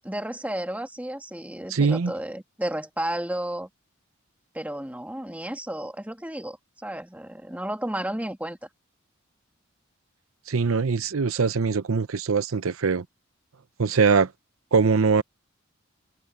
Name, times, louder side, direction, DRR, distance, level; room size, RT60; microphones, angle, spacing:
voice 1, 0.0-3.7 4.5-8.6, right 1 dB, 5° right, 1.8 m, -32 dB
voice 2, 1.7-2.1 10.5-13.0 13.8-14.3 14.7-15.2, right 5 dB, 75° right, 0.7 m, -22 dB
head